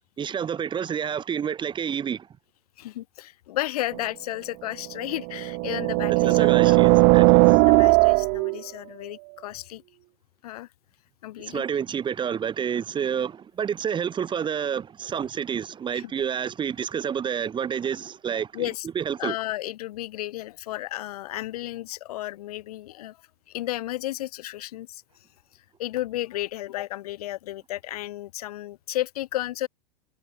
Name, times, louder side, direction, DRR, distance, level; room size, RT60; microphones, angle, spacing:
voice 1, 0.2-2.3 6.1-7.4 11.5-18.5 19.0-19.3, right 8 dB, 25° right, 2.0 m, -29 dB
voice 2, 2.8-6.9 7.2-9.8 10.4-10.7 11.2-11.8 15.9-16.1 18.5-18.9 19.2-23.2 23.5-25.0 25.8-29.7, left 15 dB, 70° left, 3.9 m, -33 dB
sound 1, 3.9-4.0 5.1-8.6, right 40 dB or more, 50° right, 0.8 m, -18 dB
hypercardioid pair, 105°, 20 cm